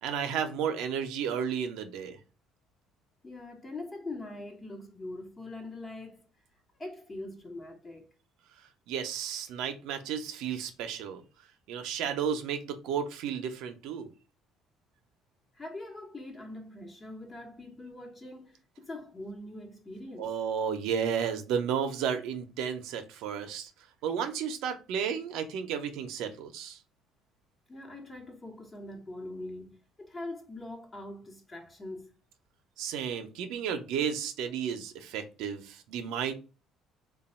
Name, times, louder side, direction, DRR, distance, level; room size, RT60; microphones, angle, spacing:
voice 1, 0.0-2.2 8.9-11.2 11.7-14.1 20.2-23.7 24.0-26.8 32.8-36.3, right 7 dB, 80° right, 0.6 m, -33 dB
voice 2, 3.2-6.2 6.8-8.1 15.5-20.3 27.7-32.1, left 2 dB, 20° left, 1.0 m, -42 dB
3.3 x 2.3 x 4.2 m
cardioid pair, 120°, 0 cm